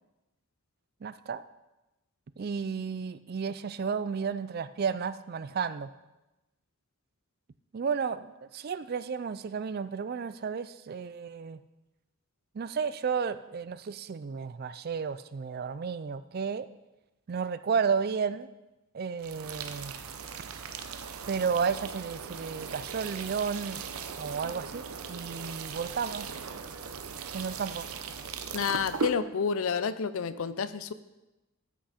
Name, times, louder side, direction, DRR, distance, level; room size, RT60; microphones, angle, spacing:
voice 1, 1.0-1.4 2.4-5.9 7.7-11.6 12.5-16.7 17.3-18.5 18.9-19.9 20.5-20.6 21.3-23.9 24.2-26.4 27.3-27.9, right 6 dB, 45° right, 14 dB, 0.4 m, -32 dB
sound 1, 19.2-29.2, right 5 dB, 85° right, 0.7 m, -39 dB
voice 2, 28.5-30.9, left 6 dB, 70° left, 14 dB, 0.5 m, -29 dB
12.5 x 6.0 x 4.2 m, 1.0 s
head